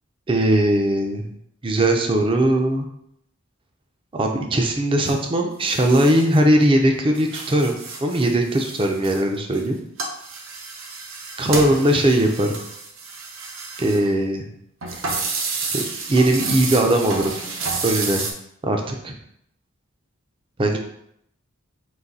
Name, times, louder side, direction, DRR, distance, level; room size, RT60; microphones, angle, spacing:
voice 1, 0.3-1.3 1.6-2.9 4.1-9.8 11.4-12.6 13.8-14.5 15.7-15.8 16.1-17.3 17.8-18.3 18.6-19.1 20.6-20.8, right 1 dB, 25° right, 3 dB, 0.4 m, -19 dB
sound 1, 5.0-5.1 5.6-6.6 6.9-9.6 10.0-14.1 14.8-18.3, right 4 dB, 65° right, 0.7 m, -30 dB
4.0 x 2.6 x 3.9 m, 0.74 s
head